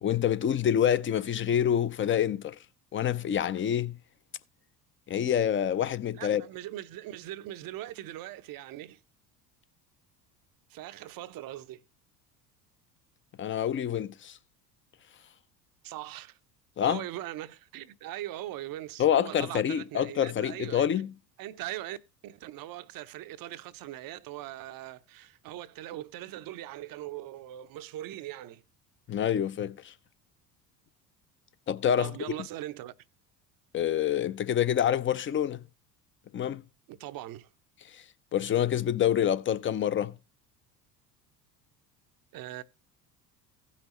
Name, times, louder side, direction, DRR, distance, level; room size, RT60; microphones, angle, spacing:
voice 1, 0.0-2.6 2.9-3.9 5.1-6.4 13.4-14.4 16.8-17.0 19.0-21.1 29.1-29.9 31.7-32.1 33.7-35.6 36.3-36.6 37.9-38.0 38.3-40.1, left 9 dB, 25° left, 0.5 m, -27 dB
voice 2, 6.1-9.0 10.7-11.8 15.8-16.4 16.8-21.0 21.4-22.0 22.2-28.6 32.0-32.9 36.9-37.5 42.3-42.6, right 14 dB, 45° right, 0.7 m, -40 dB
16.5 x 5.7 x 3.0 m
hypercardioid pair, 65°, 49 cm